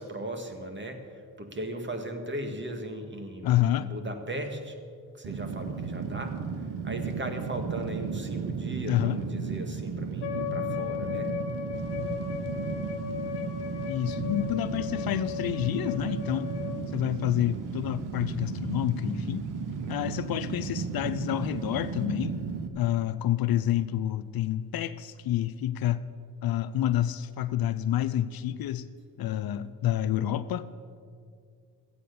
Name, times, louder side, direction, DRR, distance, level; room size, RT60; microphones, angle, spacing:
voice 1, 0.0-4.8 5.2-6.4 6.8-11.3 20.0-20.3, right 1 dB, 25° right, 2.0 m, -38 dB
voice 2, 3.4-3.9 8.9-9.2 13.9-16.5 16.9-19.5 19.9-22.3 22.7-26.0 26.4-28.9 29.2-30.7, left 12 dB, 60° left, 0.6 m, -28 dB
Fire, 5.2-22.7, right 5 dB, 70° right, 1.1 m, -34 dB
Wind instrument woodwind instrument, 10.2-16.8, left 9 dB, 85° left, 1.1 m, -36 dB
sound 1, 11.7-22.1, right 5 dB, 50° right, 1.1 m, -48 dB
14.0 x 8.6 x 6.8 m
supercardioid pair, 65°, 40 cm